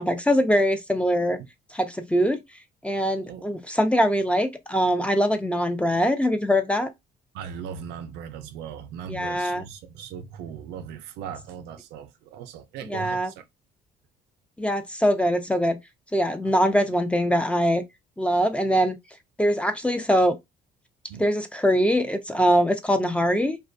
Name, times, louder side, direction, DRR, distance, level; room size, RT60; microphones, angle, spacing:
voice 1, 0.0-1.4 1.7-2.4 2.8-6.9 9.1-9.6 12.9-13.3 14.6-15.8 16.1-17.8 18.2-19.0 19.4-20.4 21.2-23.6, equal, 5° left, 0.4 m, -22 dB
voice 2, 7.3-13.5 16.4-16.5 21.1-21.3, right 8 dB, 85° right, 0.5 m, -38 dB
2.4 x 2.2 x 2.5 m
cardioid pair, 110°, 17 cm